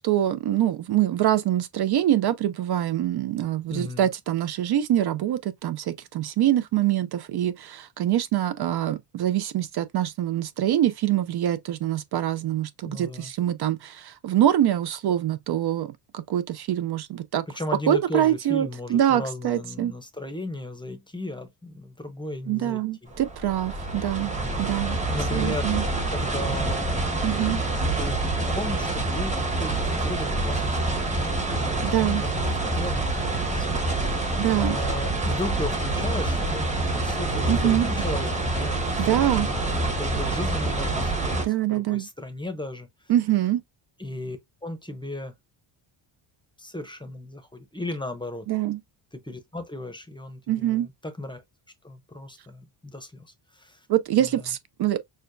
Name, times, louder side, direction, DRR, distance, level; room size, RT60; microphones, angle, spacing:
voice 1, 0.0-17.4 17.9-19.9 22.5-24.3 24.6-25.0 25.3-25.8 27.2-27.6 31.9-32.2 34.4-34.8 37.5-37.9 39.0-39.5 41.4-42.1 43.1-43.6 48.5-48.8 50.5-50.9 53.9-55.0, right 12 dB, 55° right, 0.5 m, -24 dB
voice 2, 3.7-4.1 12.9-13.3 17.5-23.1 24.3-24.7 25.1-27.0 27.9-28.2 28.5-36.7 36.9-41.4 41.7-42.9 44.0-45.3 46.6-48.5 49.1-51.4 51.8-53.9 54.2-54.4, left 1 dB, 10° left, 0.7 m, -36 dB
sound 1, 23.1-41.5, right 2 dB, 15° right, 1.0 m, -26 dB
6.4 x 2.2 x 2.6 m
cardioid pair, 135°, 49 cm